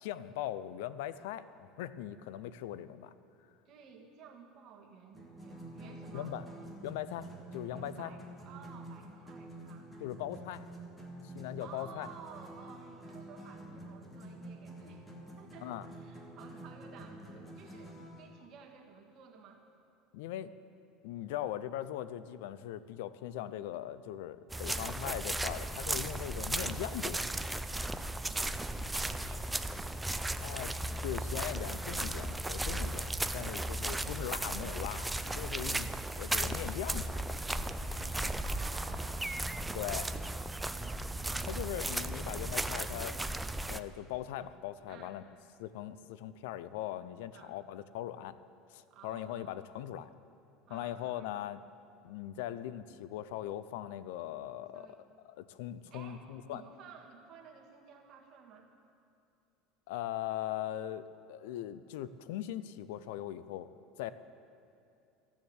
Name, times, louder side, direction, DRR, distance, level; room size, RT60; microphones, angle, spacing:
voice 1, 0.0-3.1 6.1-6.4 6.8-8.1 10.0-10.7 11.2-12.1 15.6-15.9 20.1-20.5 21.0-27.3 30.4-30.7 31.0-35.9 36.2-37.4 39.7-40.0 41.5-43.2 43.7-45.2 45.6-48.4 48.7-50.1 50.7-51.6 52.0-54.9 55.3-56.6 59.9-63.7 64.0-64.1, left 12 dB, 80° left, 15 dB, 0.5 m, -40 dB
voice 2, 3.7-6.4 7.7-9.9 11.6-15.1 15.4-19.6 24.6-24.9 27.7-29.8 33.4-34.1 37.9-39.3 39.6-41.5 44.9-45.2 47.3-47.5 48.9-49.6 50.7-51.3 54.7-55.1 55.9-58.7, right 6 dB, 45° right, 1 dB, 1.8 m, -54 dB
sound 1, 5.1-18.3, right 1 dB, 10° left, 1.6 m, -48 dB
sound 2, 24.5-43.8, right 1 dB, 5° right, 0.4 m, -36 dB
14.0 x 7.2 x 7.9 m, 2.7 s
supercardioid pair, 135°, 0 cm